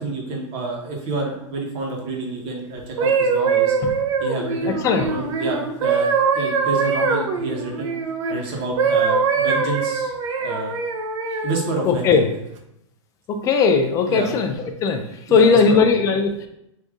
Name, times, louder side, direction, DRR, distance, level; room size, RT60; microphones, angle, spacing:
voice 1, 0.0-3.8 4.2-6.1 6.3-7.9 8.3-10.1 10.4-10.7 11.4-12.2 14.1-14.3 15.3-15.8, right 3 dB, 35° right, 0 dB, 1.1 m, -28 dB
sound 1, 2.8-8.3 8.8-11.6 12.3-12.6, right 5 dB, 65° right, 0.7 m, -22 dB
voice 2, 4.7-5.1 11.9-12.3 13.3-14.5 14.8-16.5, left 5 dB, 20° left, 5 dB, 0.4 m, -18 dB
5.0 x 2.6 x 3.6 m, 0.79 s
hypercardioid pair, 150°, 17 cm